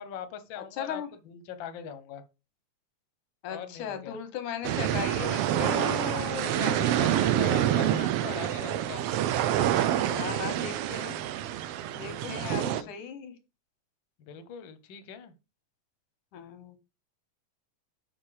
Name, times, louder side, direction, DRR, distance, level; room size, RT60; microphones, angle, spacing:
voice 1, 0.0-2.2 3.5-4.2 6.4-9.0 9.6-10.4 11.9-12.9 14.2-15.3, left 8 dB, 60° left, 1.3 m, -41 dB
voice 2, 0.8-1.1 3.4-6.9 10.1-11.2 11.9-13.4 16.3-16.8, left 8 dB, 90° left, 2.8 m, -37 dB
sound 1, 4.6-12.8, right 11 dB, 85° right, 1.3 m, -27 dB
7.4 x 5.6 x 4.8 m
omnidirectional pair, 3.5 m